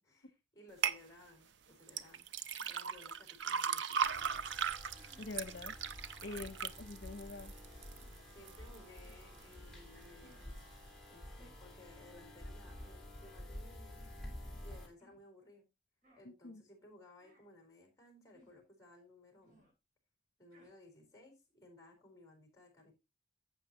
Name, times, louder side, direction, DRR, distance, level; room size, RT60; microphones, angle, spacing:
voice 1, 0.0-4.4 6.3-6.5 8.3-10.6 11.1-14.1 14.6-15.7 16.2-19.6 20.4-22.9, left 2 dB, 20° left, 3 dB, 4.3 m, -59 dB
sound 1, 0.8-1.0 1.9-8.0 8.5-9.0 9.5-9.6, right 7 dB, 85° right, 0.6 m, -37 dB
sound 2, 2.6-2.8 3.4-3.5 3.7-4.1 4.9-5.4 6.3-6.6 7.9-8.2 9.0-9.3 10.2-10.5 11.4-11.7 12.7-13.0 14.0-14.2 15.0-15.3 16.0-16.3 17.2-17.5 18.3-18.6 19.4-19.7 20.5-20.7, equal, 50° right, 5.8 m, -67 dB
sound 3, 4.0-14.9, left 1 dB, ahead, 3.4 m, -51 dB
voice 2, 5.2-5.7 6.2-7.5 16.2-16.6, left 3 dB, 80° left, 11 dB, 0.8 m, -45 dB
11.5 x 8.0 x 2.9 m, 0.24 s
head